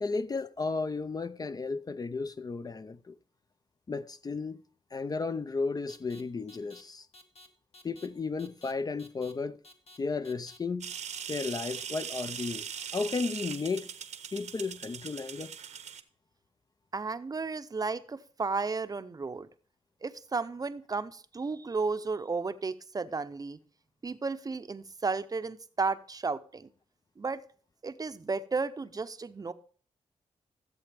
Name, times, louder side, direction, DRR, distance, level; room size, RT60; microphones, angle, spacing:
voice 1, 0.0-3.2 3.9-4.6 4.9-7.1 7.8-9.6 10.0-10.9 11.3-13.9 14.3-15.5, left 4 dB, 35° left, 0.5 m, -34 dB
sound 1, 5.9-6.2 6.5-6.8 7.1-7.5 7.7-8.1 8.4-8.7 9.0-9.3 9.6-10.0 10.2-10.6 10.9-11.2 11.5-11.8 12.2-12.5 12.8-13.1, left 1 dB, 60° left, 1.4 m, -53 dB
sound 2, 10.8-16.0, right 8 dB, 85° right, 0.9 m, -40 dB
voice 2, 16.9-19.5 20.0-23.6 24.0-26.7 27.2-27.4 27.8-29.5, right 4 dB, 35° right, 0.6 m, -33 dB
14.5 x 7.7 x 3.4 m
cardioid pair, 95°, 12 cm